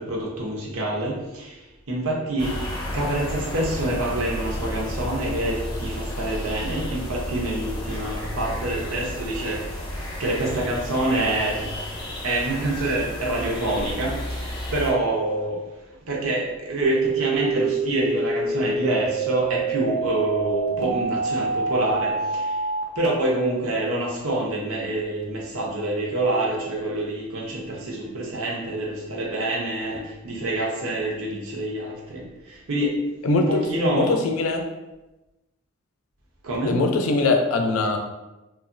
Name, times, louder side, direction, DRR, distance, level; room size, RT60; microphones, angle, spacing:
voice 1, 0.0-2.6 2.9-11.7 12.2-22.7 22.9-34.2 36.4-36.8, right 1 dB, 90° right, -2 dB, 0.7 m, -27 dB
sound 1, 2.4-14.9, left 1 dB, 20° left, 0.6 m, -32 dB
sound 2, 16.8-22.8, right 3 dB, 50° right, 0.5 m, -26 dB
voice 2, 33.2-33.6 33.9-34.6 36.6-38.0, left 3 dB, 85° left, 4 dB, 0.4 m, -22 dB
3.0 x 2.4 x 2.5 m, 1.0 s
head